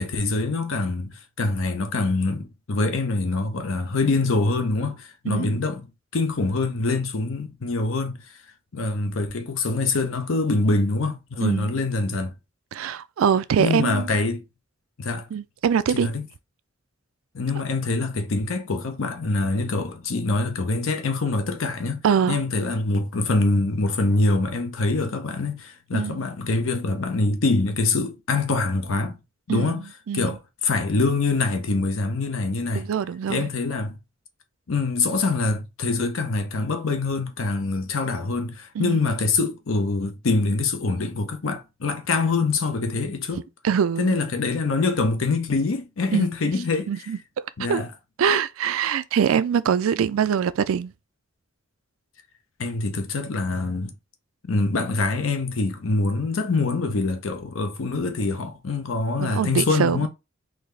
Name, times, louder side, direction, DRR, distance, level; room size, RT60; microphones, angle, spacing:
voice 1, 0.0-5.9 6.1-8.2 8.7-12.3 13.6-14.4 15.0-15.3 15.9-16.3 17.3-29.2 29.5-29.8 30.1-32.8 33.3-34.0 34.7-43.4 44.0-46.9 47.6-47.9 52.6-53.9 54.5-60.1, left 3 dB, 80° left, 0.7 m, -24 dB
voice 2, 5.3-5.6 11.4-11.8 12.7-14.1 15.3-16.1 22.0-22.4 25.9-26.2 29.5-30.4 32.7-33.4 38.8-39.0 43.6-44.2 46.1-46.3 46.9-47.2 47.6-47.8 48.2-50.9 59.2-60.1, right 7 dB, 85° right, 0.4 m, -23 dB
3.9 x 2.7 x 3.2 m
head